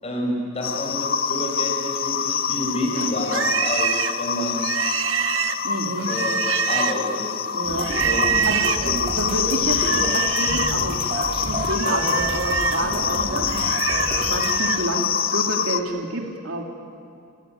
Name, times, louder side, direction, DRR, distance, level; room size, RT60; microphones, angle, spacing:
voice 1, 0.0-4.7 6.1-6.4 6.7-7.3 8.0-8.5 8.8-9.0, equal, 30° left, -1 dB, 6.5 m, -29 dB
sound 1, 0.6-15.8, left 7 dB, 45° left, 0.8 m, -25 dB
Livestock farm animals working animals, 2.9-7.2 7.8-8.9 9.7-10.8 11.2-14.9, right 8 dB, 70° right, 1.0 m, -26 dB
voice 2, 5.6-6.1 7.5-7.9 8.5-13.7 14.2-16.6, right 2 dB, 90° right, 1 dB, 3.0 m, -29 dB
sound 2, 7.6-14.5, right 1 dB, 35° right, 3.4 m, -31 dB
29.0 x 17.0 x 9.5 m, 2.4 s
head